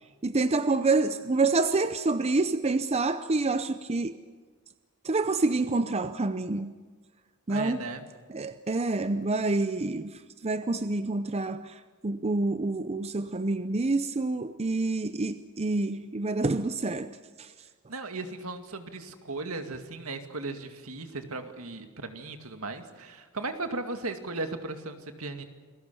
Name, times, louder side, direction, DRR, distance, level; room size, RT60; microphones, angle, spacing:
voice 1, 0.2-4.1 5.0-6.8 7.5-7.8 8.3-17.5, right 3 dB, 30° right, 0.7 m, -27 dB
voice 2, 7.5-8.1 17.9-25.4, right 3 dB, 75° right, 2.3 m, -36 dB
28.5 x 20.5 x 7.0 m
head